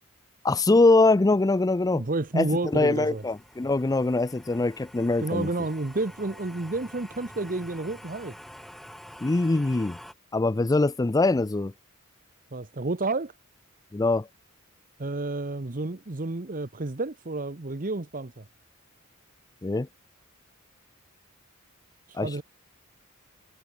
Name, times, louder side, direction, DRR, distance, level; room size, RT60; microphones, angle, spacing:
voice 1, 0.4-2.0 2.4-2.5 2.7-5.5 9.2-10.0 10.3-11.7 13.9-14.3 19.6-19.9 22.1-22.4, left 2 dB, 15° left, 0.4 m, -23 dB
sound 1, 1.8-10.1, equal, ahead, 1.5 m, -48 dB
voice 2, 1.9-3.2 5.2-8.4 12.5-13.3 15.0-18.5 22.1-22.4, right 2 dB, 40° right, 1.0 m, -30 dB
head